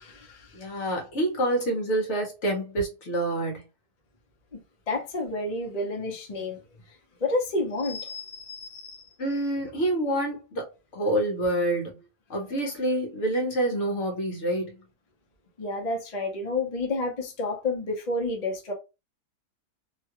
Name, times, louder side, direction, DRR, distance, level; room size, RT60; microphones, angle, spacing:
voice 1, 0.0-0.6 4.5-4.6 4.9-6.6 7.2-9.1 15.6-18.7, left 2 dB, 40° left, 0.6 m, -30 dB
voice 2, 0.5-3.6 9.2-12.0 12.3-14.8, right 1 dB, 55° left, 1.1 m, -27 dB
2.9 x 2.3 x 2.9 m
omnidirectional pair, 1.6 m